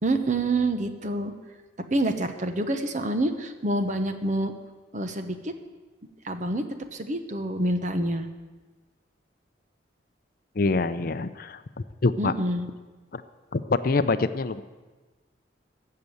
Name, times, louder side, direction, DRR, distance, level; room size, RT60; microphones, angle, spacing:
voice 1, 0.0-1.3 1.8-4.5 4.9-5.5 6.2-6.6 6.9-8.3 12.2-12.7, right 1 dB, 40° right, 8 dB, 1.0 m, -27 dB
voice 2, 10.6-11.6 12.0-12.3 13.1-13.2 13.5-14.6, left 3 dB, 50° left, 12 dB, 0.6 m, -25 dB
15.0 x 6.8 x 9.2 m, 1.3 s
head